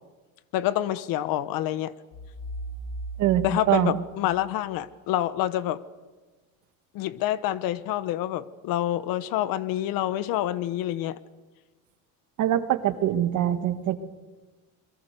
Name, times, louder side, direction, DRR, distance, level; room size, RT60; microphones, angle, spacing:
voice 1, 0.5-1.9 3.4-5.8 6.9-11.2, left 13 dB, 65° left, 16 dB, 1.1 m, -27 dB
sound 1, 2.1-4.9, right 2 dB, 50° left, 2.9 m, -38 dB
voice 2, 3.2-4.0 12.4-14.0, right 11 dB, 55° right, 10 dB, 1.7 m, -24 dB
28.5 x 22.5 x 6.7 m, 1.2 s
cardioid pair, 170°, 36 cm